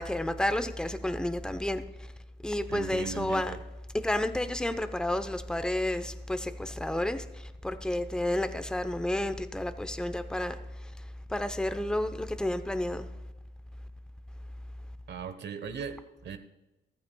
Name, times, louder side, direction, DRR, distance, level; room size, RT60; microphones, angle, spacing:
voice 1, 0.0-2.1 2.4-3.5 4.0-13.1, left 1 dB, 5° left, 0.8 m, -31 dB
voice 2, 2.7-3.6 15.1-16.4, right 6 dB, 60° right, 1.1 m, -38 dB
15.0 x 14.0 x 2.3 m
cardioid pair, 90°, 20 cm